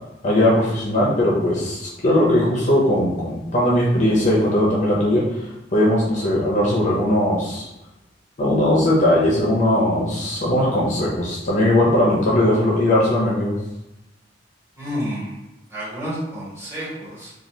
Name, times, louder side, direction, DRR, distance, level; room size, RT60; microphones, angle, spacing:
voice 1, 0.2-5.4 5.7-7.7 8.4-13.6, left 1 dB, 40° left, -4 dB, 0.5 m, -19 dB
voice 2, 14.8-15.4 15.7-17.3, equal, 15° right, -10 dB, 1.4 m, -30 dB
2.7 x 2.3 x 3.2 m, 0.93 s
head